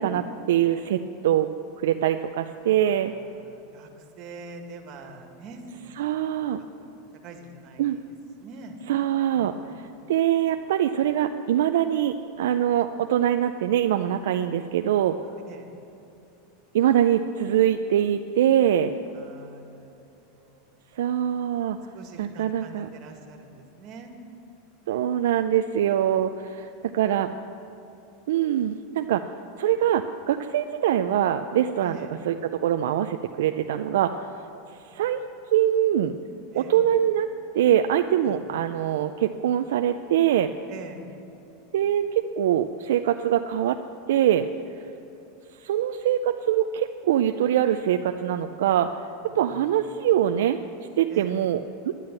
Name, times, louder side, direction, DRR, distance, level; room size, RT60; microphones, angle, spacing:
voice 1, 0.0-1.5 1.8-3.1 6.0-6.6 7.8-8.0 8.9-9.5 10.1-15.2 16.7-18.9 21.0-21.8 22.2-22.9 24.9-27.3 28.3-29.3 29.6-32.0 32.3-34.3 34.9-35.2 35.5-36.1 36.5-37.3 37.5-40.5 41.7-42.0 42.4-43.8 44.1-44.5 45.6-48.9 49.4-50.6 51.0-51.6 51.8-51.9, right 11 dB, 80° right, 7 dB, 0.4 m, -23 dB
voice 2, 2.8-6.3 6.6-6.9 7.2-8.1 8.4-8.8 9.3-9.7 15.5-15.7 19.1-20.7 21.9-24.1 26.7-27.3 31.8-32.2 34.9-35.1 36.5-36.8 38.2-38.4 40.7-41.0 49.3-50.0 51.1-51.4, right 3 dB, 45° right, 4 dB, 1.8 m, -45 dB
10.5 x 10.5 x 7.5 m, 2.8 s
supercardioid pair, 125°, 0 cm